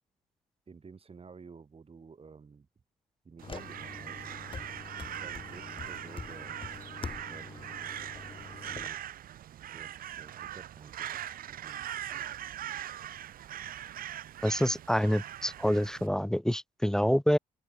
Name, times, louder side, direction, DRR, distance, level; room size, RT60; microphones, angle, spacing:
voice 1, 0.7-2.7 3.2-4.2 5.2-6.6 7.3-7.7 8.6-9.0 9.7-12.3, right 5 dB, 40° right, 4.6 m, -52 dB
sound 1, 3.4-8.9, left 4 dB, 35° left, 2.9 m, -44 dB
Crow, 3.4-16.1, right 11 dB, 70° right, 2.0 m, -41 dB
voice 2, 14.4-17.4, equal, 5° left, 0.7 m, -27 dB
supercardioid pair, 65°, 15 cm